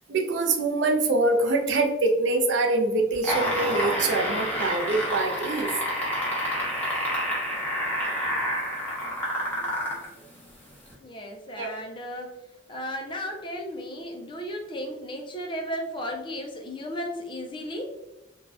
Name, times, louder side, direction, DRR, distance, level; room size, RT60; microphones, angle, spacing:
voice 1, 0.1-5.7 11.6-11.7, right 2 dB, 70° right, 3 dB, 0.5 m, -24 dB
sound 1, 3.1-10.1 10.9-11.0, equal, 10° left, 0.9 m, -28 dB
voice 2, 11.0-12.3 12.7-17.9, equal, 25° left, 2 dB, 0.4 m, -34 dB
2.6 x 2.2 x 3.3 m, 0.95 s
head